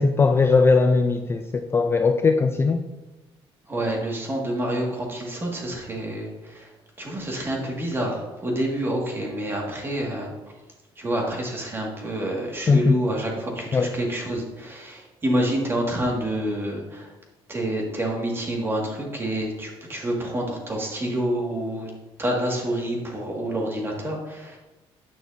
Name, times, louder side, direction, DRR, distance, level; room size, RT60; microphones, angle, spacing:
voice 1, 0.0-2.8 12.7-13.0 13.7-13.9, left 4 dB, 25° left, 6 dB, 0.3 m, -19 dB
voice 2, 3.7-10.3 11.0-17.1 17.5-21.9 22.2-24.6, right 1 dB, 20° right, -1 dB, 1.7 m, -28 dB
9.1 x 6.3 x 2.6 m, 1.1 s
cardioid pair, 130°, 10 cm